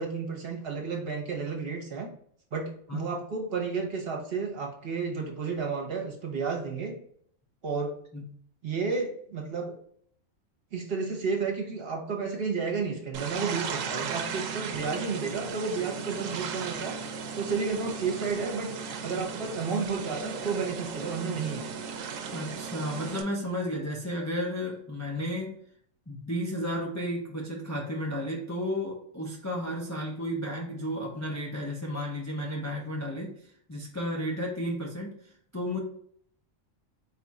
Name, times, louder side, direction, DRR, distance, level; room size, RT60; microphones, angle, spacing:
voice 1, 0.0-2.1 2.5-7.0 7.6-7.9 8.6-9.8 10.7-17.0 17.3-21.7, right 5 dB, 50° right, 0 dB, 1.0 m, -32 dB
sound 1, 13.1-23.2, right 6 dB, 85° right, 1.0 m, -36 dB
voice 2, 22.3-25.6 26.1-35.8, equal, 25° left, -2 dB, 0.4 m, -33 dB
4.2 x 2.4 x 4.0 m, 0.62 s
omnidirectional pair, 1.3 m